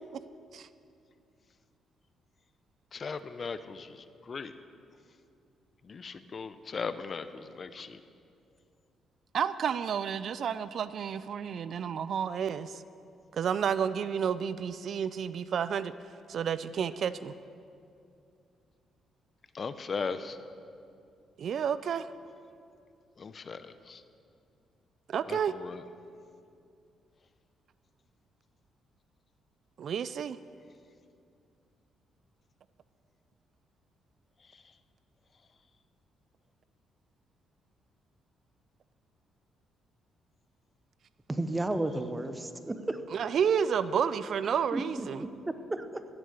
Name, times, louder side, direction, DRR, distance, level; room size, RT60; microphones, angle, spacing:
voice 1, 2.9-4.5 5.8-8.0 19.5-20.4 23.2-24.0 25.2-25.9 34.4-34.8 35.3-35.4, left 5 dB, 40° left, 12 dB, 0.6 m, -38 dB
voice 2, 9.3-12.8 13.3-15.9 16.3-17.3 21.4-22.1 25.1-25.5 29.8-30.4 43.1-45.2, right 7 dB, 60° right, 15 dB, 0.4 m, -30 dB
voice 3, 41.3-43.0 44.7-46.1, right 2 dB, 15° right, 10 dB, 0.9 m, -33 dB
15.5 x 8.1 x 6.6 m, 2.5 s
cardioid pair, 90°, 0 cm